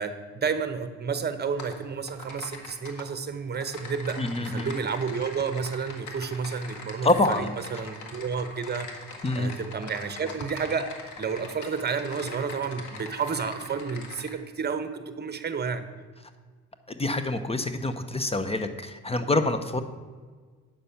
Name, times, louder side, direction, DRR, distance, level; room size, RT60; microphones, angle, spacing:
voice 1, 0.0-7.1 7.4-8.9 9.3-10.9 11.2-15.8, right 5 dB, 35° right, 10 dB, 1.0 m, -31 dB
Typing, 1.6-1.8 2.1-3.0 3.5-14.3, left 3 dB, 75° left, 1.7 m, -42 dB
voice 2, 4.2-4.7 7.0-7.5 9.2-9.5 16.9-19.8, left 2 dB, 20° left, 10 dB, 0.6 m, -26 dB
8.9 x 6.8 x 5.7 m, 1.5 s
cardioid pair, 90°, 30 cm